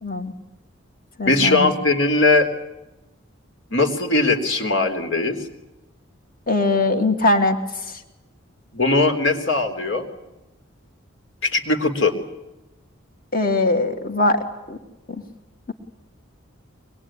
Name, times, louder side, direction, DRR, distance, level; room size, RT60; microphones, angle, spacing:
voice 1, 0.0-0.3 1.2-1.7 6.5-7.6 13.3-14.4 14.7-14.8, left 2 dB, 45° left, 5 dB, 2.8 m, -20 dB
voice 2, 1.3-2.5 3.7-5.4 8.7-10.1 11.4-12.1, left 3 dB, 65° left, 6 dB, 3.6 m, -19 dB
25.0 x 21.5 x 10.0 m, 0.97 s
head